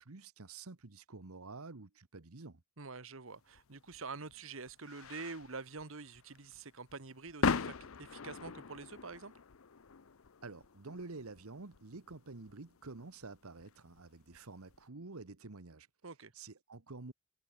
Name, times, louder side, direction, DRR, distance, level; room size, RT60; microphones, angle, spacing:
voice 1, 0.0-2.6 10.4-15.9 16.3-17.1, right 3 dB, 90° right, 1.3 m, -49 dB
voice 2, 2.8-9.3 16.0-16.3, right 4 dB, 65° right, 1.5 m, -46 dB
sound 1, 3.5-14.8, left 5 dB, 75° left, 0.7 m, -41 dB
head